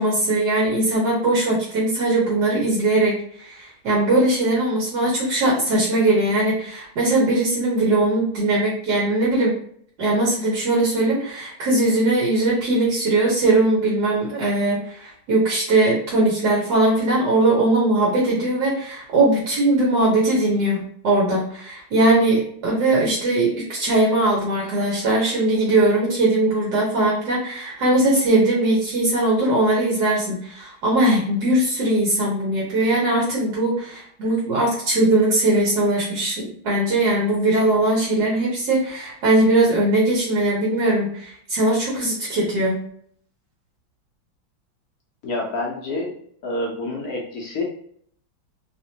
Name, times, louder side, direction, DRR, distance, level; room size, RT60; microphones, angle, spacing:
voice 1, 0.0-9.5 10.0-42.8, right 2 dB, 60° right, -4 dB, 1.4 m, -20 dB
voice 2, 45.2-46.1 46.4-47.6, left 2 dB, 60° left, -2 dB, 1.1 m, -27 dB
3.5 x 2.9 x 2.8 m, 0.62 s
omnidirectional pair, 2.2 m